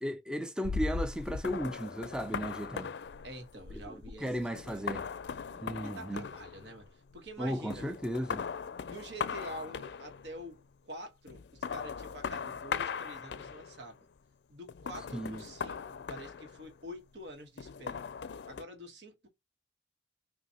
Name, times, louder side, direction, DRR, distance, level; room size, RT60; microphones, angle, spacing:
voice 1, 0.0-2.9 3.9-4.0 4.2-5.1 5.6-6.3 7.4-8.4 15.1-15.4, equal, 5° right, 0.3 m, -35 dB
sound 1, 0.6-7.4 7.7-10.4 11.3-13.9 14.7-16.9 17.6-18.6, left 6 dB, 75° left, 0.4 m, -39 dB
voice 2, 3.2-4.4 4.7-5.0 5.8-7.9 8.8-14.1 14.5-18.1 18.4-19.3, right 1 dB, 80° right, 1.4 m, -47 dB
5.8 x 2.6 x 2.9 m
head